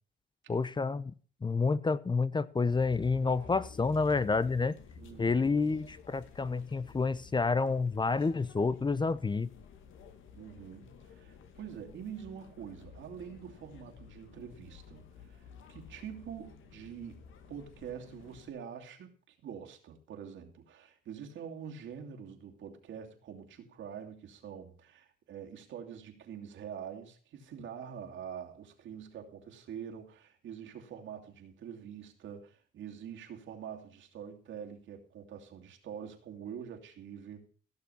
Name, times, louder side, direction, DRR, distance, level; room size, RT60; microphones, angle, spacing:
voice 1, 0.5-1.1 1.4-4.8 5.2-9.5, left 4 dB, 25° left, 0.7 m, -29 dB
sound 1, 2.7-18.5, left 6 dB, 80° left, 2.1 m, -53 dB
voice 2, 5.0-5.4 10.3-17.2 17.5-37.5, right 8 dB, 75° right, 2.8 m, -45 dB
16.5 x 6.8 x 5.6 m
cardioid pair, 90°, 20 cm